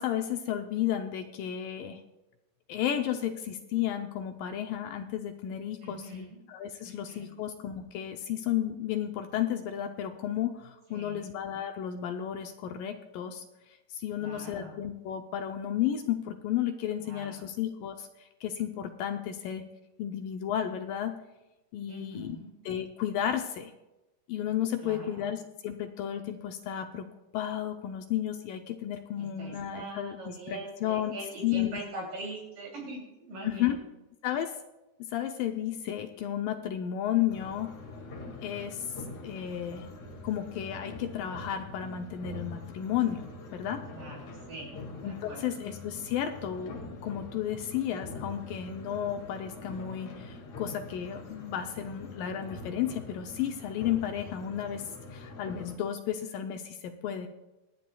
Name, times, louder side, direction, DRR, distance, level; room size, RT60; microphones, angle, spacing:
voice 1, 0.0-2.0 2.7-13.4 13.9-18.1 18.4-19.7 20.0-21.2 21.7-22.4 22.7-23.7 24.3-27.1 27.3-31.1 31.4-31.8 33.4-33.8 34.2-34.5 35.0-37.7 38.4-38.9 39.2-39.9 40.2-43.8 45.0-54.8 55.1-57.3, left 10 dB, 75° left, 6 dB, 2.1 m, -33 dB
voice 2, 5.8-6.4 6.8-7.4 10.9-11.3 14.2-14.8 17.0-17.5 21.9-22.5 24.8-25.2 29.2-33.8 43.9-45.6, right 2 dB, 60° right, -3 dB, 4.4 m, -43 dB
sound 1, 37.3-55.8, left 2 dB, 50° left, 2.9 m, -44 dB
26.5 x 9.7 x 2.3 m, 1.0 s
omnidirectional pair, 4.5 m